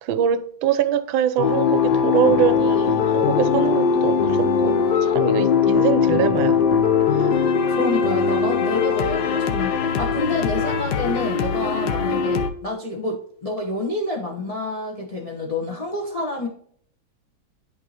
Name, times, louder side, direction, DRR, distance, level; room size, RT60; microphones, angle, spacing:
voice 1, 0.0-6.6 7.1-7.3 12.3-12.4, right 10 dB, 80° right, 1.3 m, -24 dB
sound 1, 1.4-12.5, left 6 dB, 65° left, 1.2 m, -20 dB
voice 2, 7.7-16.5, left 2 dB, 35° left, 0.5 m, -28 dB
11.0 x 3.7 x 2.8 m
omnidirectional pair, 2.2 m